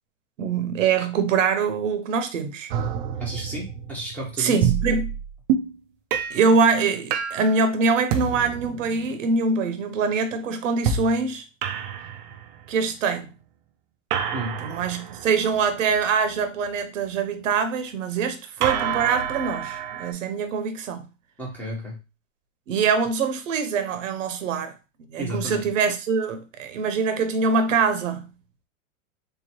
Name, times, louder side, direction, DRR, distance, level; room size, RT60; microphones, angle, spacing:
voice 1, 0.4-2.7 4.4-5.1 6.3-11.4 12.7-13.3 14.6-21.0 22.7-24.7 25.1-28.2, right 5 dB, 75° right, 0.9 m, -24 dB
sound 1, 2.7-5.8 6.1-6.5 7.1-7.6 8.1-9.3 10.8-11.2 11.6-12.8 14.1-16.4 18.6-20.1, right 7 dB, 40° right, 0.4 m, -28 dB
voice 2, 3.2-4.7 14.3-14.6 21.4-22.0 25.2-25.7, equal, 5° left, 1.0 m, -32 dB
3.5 x 2.9 x 3.0 m
hypercardioid pair, 140°, 39 cm